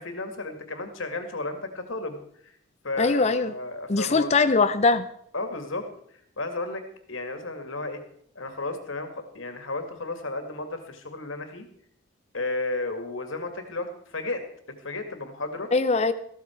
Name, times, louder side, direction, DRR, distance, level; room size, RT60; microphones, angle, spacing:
voice 1, 0.0-2.5 2.8-4.4 5.3-5.9 6.4-6.8 7.1-8.0 8.4-9.1 9.3-11.7 12.3-14.4 14.8-15.7, left 2 dB, 85° left, 7 dB, 2.3 m, -33 dB
voice 2, 3.0-3.5 3.9-5.1 15.7-16.1, left 3 dB, 35° left, 12 dB, 0.6 m, -21 dB
14.5 x 13.5 x 4.6 m, 0.68 s
head